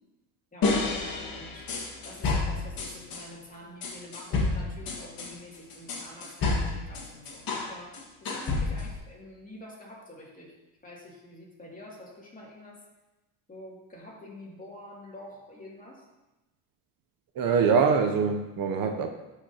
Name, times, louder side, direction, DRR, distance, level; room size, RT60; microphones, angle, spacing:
voice 1, 0.5-1.7 2.0-10.6 10.8-12.8 13.5-16.0, left 1 dB, 20° left, -4 dB, 2.5 m, -47 dB
sound 1, 0.6-3.2 3.8-7.7 7.9-9.0, left 3 dB, 60° left, 1.9 m, -29 dB
voice 2, 17.4-19.1, right 5 dB, 60° right, 5 dB, 0.8 m, -24 dB
12.0 x 5.0 x 2.9 m, 1.0 s
cardioid pair, 95°, 38 cm